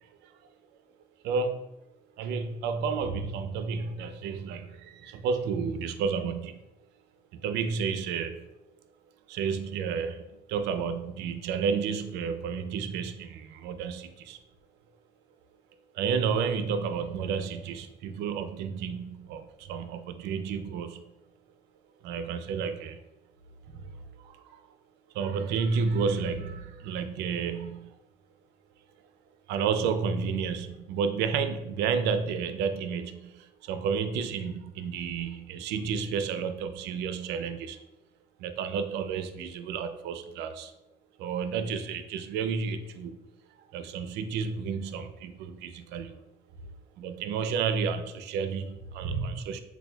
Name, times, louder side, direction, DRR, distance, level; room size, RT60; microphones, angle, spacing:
voice 1, 1.2-1.6 2.2-6.6 7.3-8.5 9.3-10.2 10.5-14.4 15.9-21.0 22.0-23.0 23.7-23.9 24.2-24.6 25.1-28.0 29.5-37.8 38.4-40.7 41.2-43.2 43.7-46.2 47.0-49.6, right 6 dB, 85° right, 9 dB, 0.4 m, -31 dB
6.7 x 2.2 x 2.2 m, 0.94 s
cardioid pair, 110°, 17 cm